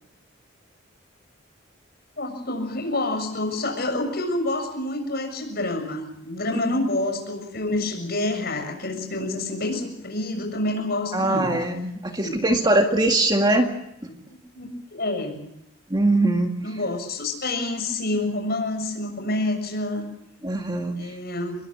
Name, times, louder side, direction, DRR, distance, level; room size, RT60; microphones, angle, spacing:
voice 1, 2.2-11.5 12.2-12.4 14.5-15.5 16.6-20.1 21.0-21.6, left 2 dB, 50° left, 4 dB, 6.9 m, -28 dB
voice 2, 11.1-13.7 14.0-14.1 15.9-16.8 20.4-21.2, right 2 dB, 20° right, 3 dB, 2.0 m, -22 dB
25.5 x 21.5 x 7.4 m, 0.82 s
head